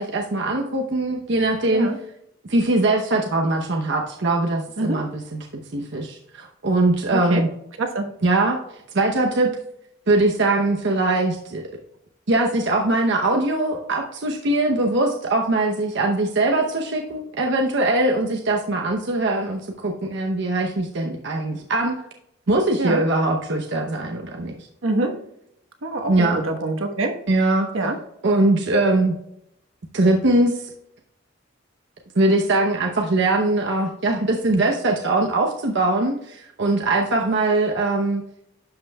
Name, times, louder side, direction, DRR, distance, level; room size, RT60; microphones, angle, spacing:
voice 1, 0.0-1.9 2.4-5.5 5.7-7.5 8.2-8.6 8.9-9.5 10.1-11.6 12.3-22.0 22.5-24.7 26.1-26.4 27.3-27.7 28.2-29.2 29.9-30.6 32.2-38.2, right 2 dB, 60° right, 2 dB, 0.8 m, -21 dB
voice 2, 7.1-7.4 7.8-8.1 22.8-23.0 24.8-25.1 25.8-27.2 27.7-28.0, right 2 dB, 85° right, 3 dB, 1.2 m, -25 dB
11.5 x 5.5 x 2.2 m, 0.77 s
head